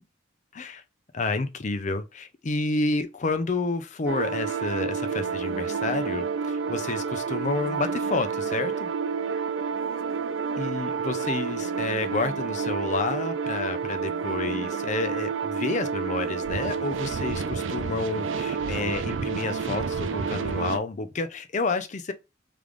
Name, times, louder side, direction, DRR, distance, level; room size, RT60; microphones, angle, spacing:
voice 1, 1.1-8.9 10.5-22.1, left 3 dB, 40° left, 0.5 m, -30 dB
sound 1, 4.1-20.8, right 5 dB, 85° right, 0.5 m, -29 dB
3.4 x 3.3 x 3.7 m
head